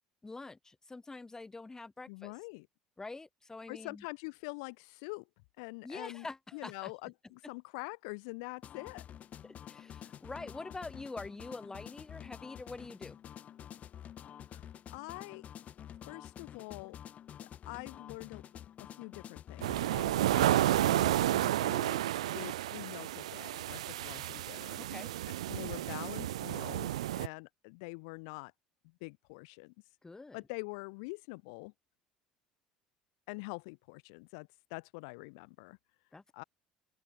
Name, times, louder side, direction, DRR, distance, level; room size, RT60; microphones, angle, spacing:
voice 1, 0.2-2.3 3.0-4.0 5.8-6.9 9.4-13.2 19.9-20.2 24.8-25.2 30.0-30.4 36.1-36.2, left 3 dB, 15° left, 6.4 m, -45 dB
voice 2, 2.1-2.7 3.7-5.2 5.6-6.3 6.5-9.0 14.5-15.4 16.1-17.0 17.7-24.8 25.5-28.5 29.0-29.7 30.3-31.7 33.3-35.8 36.3-36.4, left 32 dB, 70° left, 3.1 m, -45 dB
sound 1, 8.6-21.5, left 10 dB, 45° left, 1.3 m, -49 dB
sound 2, 19.6-27.3, right 14 dB, 80° right, 0.6 m, -31 dB
open air
hypercardioid pair, 60°, 3 cm